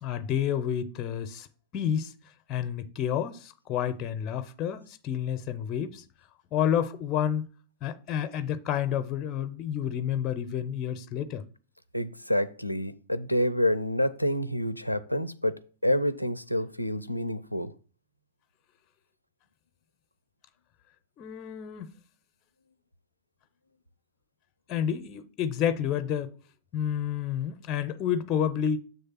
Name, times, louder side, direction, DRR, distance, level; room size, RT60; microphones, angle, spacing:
voice 1, 0.0-1.5 1.7-2.1 2.5-6.0 6.5-7.5 7.8-11.4 21.2-21.9 24.7-26.3 26.7-28.8, left 9 dB, 35° left, 0.6 m, -29 dB
voice 2, 11.9-17.7, equal, 90° left, 0.4 m, -28 dB
7.1 x 3.4 x 5.7 m
figure-of-eight pair, 90°, 0 cm